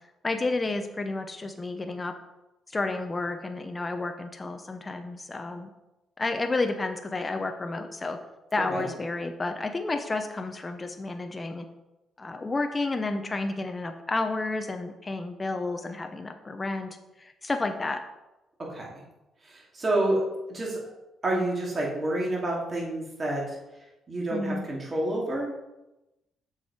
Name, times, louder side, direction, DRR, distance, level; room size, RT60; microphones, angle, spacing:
voice 1, 0.2-2.1 2.7-5.7 6.2-8.2 8.5-11.7 12.2-18.0 24.3-24.7, left 3 dB, 25° left, 6 dB, 0.7 m, -31 dB
voice 2, 19.7-20.2 20.5-20.8 21.2-23.4 24.1-25.5, right 1 dB, 35° right, -3 dB, 2.7 m, -28 dB
7.0 x 4.9 x 4.8 m, 0.98 s
cardioid pair, 90°, 0 cm